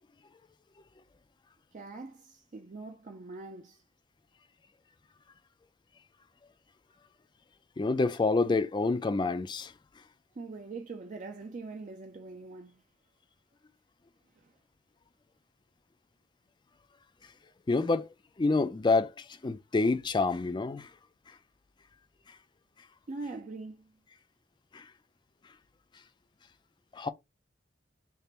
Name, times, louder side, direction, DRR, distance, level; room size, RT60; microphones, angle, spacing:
voice 1, 1.7-3.8 10.4-12.8 14.4-14.5 23.1-24.0, right 3 dB, 40° right, 0.4 m, -43 dB
voice 2, 7.8-9.7 17.7-18.1 18.4-20.9 24.7-24.8 26.9-27.1, left 3 dB, 25° left, 0.3 m, -27 dB
3.4 x 2.5 x 4.2 m
head